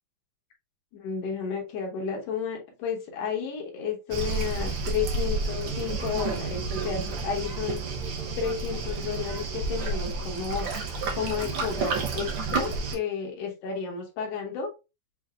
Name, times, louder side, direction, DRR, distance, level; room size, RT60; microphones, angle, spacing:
voice 1, 0.9-7.8 8.4-10.7 11.2-14.7, left 6 dB, 65° left, 1.9 m, -32 dB
Waves surf, 4.1-13.0, right 3 dB, 70° right, 1.3 m, -30 dB
6.6 x 2.6 x 2.3 m
omnidirectional pair, 3.7 m